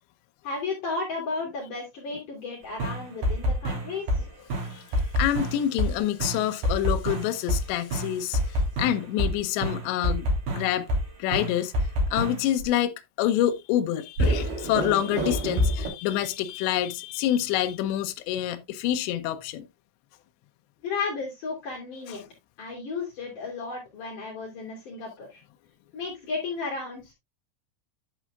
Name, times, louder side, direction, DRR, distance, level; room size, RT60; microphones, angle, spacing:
voice 1, 0.4-4.3 20.8-22.2 22.6-25.4 25.9-27.1, left 4 dB, 45° left, 3.7 m, -33 dB
sound 1, 2.8-4.2 4.5-5.9 6.2-9.3 9.6-11.0 11.3-12.6 14.2-15.9, equal, 50° right, 4.3 m, -26 dB
voice 2, 5.2-10.9 11.2-11.7 12.1-19.7 22.1-22.2, left 12 dB, 80° left, 2.9 m, -27 dB
10.0 x 7.8 x 2.4 m
omnidirectional pair, 5.6 m